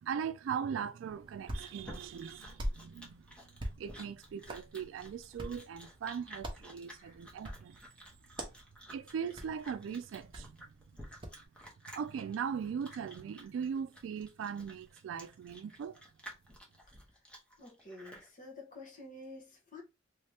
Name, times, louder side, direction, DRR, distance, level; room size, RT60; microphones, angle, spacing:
voice 1, 0.0-3.2 3.8-7.8 8.9-10.7 11.9-16.0, right 7 dB, 80° right, 0.3 m, -39 dB
Chewing mastication, 1.0-18.3, equal, 5° left, 0.9 m, -53 dB
Hands, 1.1-11.4, equal, 25° right, 0.8 m, -46 dB
voice 2, 17.6-19.8, left 2 dB, 45° left, 1.2 m, -50 dB
3.2 x 2.8 x 3.3 m
head